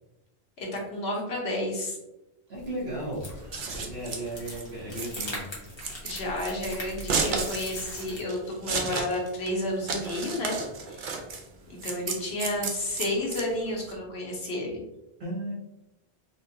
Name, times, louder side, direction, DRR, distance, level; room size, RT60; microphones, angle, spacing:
voice 1, 0.6-2.0 6.0-10.6 10.9-11.2 11.7-14.7, left 1 dB, 75° left, -2 dB, 1.2 m, -31 dB
sound 1, 2.5-8.2, left 1 dB, 30° left, 0.9 m, -41 dB
voice 2, 2.5-3.3 3.7-5.4 15.2-15.5, right 1 dB, 75° right, -4 dB, 1.4 m, -35 dB
Scissors, 3.3-13.9, right 4 dB, 60° right, 0.7 m, -33 dB
4.1 x 2.2 x 2.7 m, 0.92 s
omnidirectional pair, 1.1 m